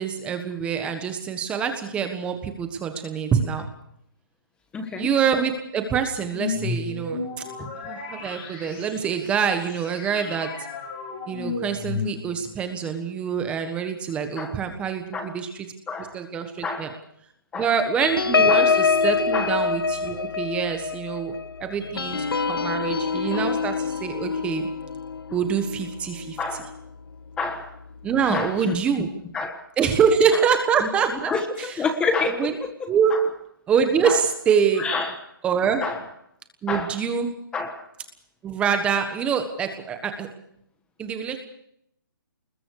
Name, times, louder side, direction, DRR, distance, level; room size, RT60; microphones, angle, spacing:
voice 1, 0.0-3.6 5.0-7.2 7.8-10.5 11.3-15.7 16.1-16.9 17.5-21.3 21.6-24.7 25.3-26.4 28.0-29.1 29.8-31.3 31.6-31.7 32.3-32.5 32.9-33.1 33.7-34.9 35.4-35.8 36.6-37.3 38.4-40.3 41.0-41.4, right 7 dB, 10° right, 7 dB, 1.4 m, -25 dB
voice 2, 4.7-5.1 7.6-7.7 14.4-14.5 15.1-15.4 15.9-16.2 16.6-17.0 17.5-17.7 18.5-18.6 19.3-19.5 23.3-23.4 26.4-26.7 27.4-27.7 28.3-28.8 29.3-29.6 30.3-30.4 30.8-30.9 31.3-33.2 34.0-34.2 34.8-35.1 35.8-36.1 36.7-37.0 37.5-37.8, left 4 dB, 10° left, 7 dB, 1.4 m, -28 dB
sound 1, 6.3-12.6, left 4 dB, 25° left, 5.1 m, -33 dB
sound 2, 18.0-26.9 27.4-27.6 27.9-28.2, left 5 dB, 90° left, 1.0 m, -25 dB
28.0 x 21.0 x 4.8 m, 0.73 s
hypercardioid pair, 165°, 12 cm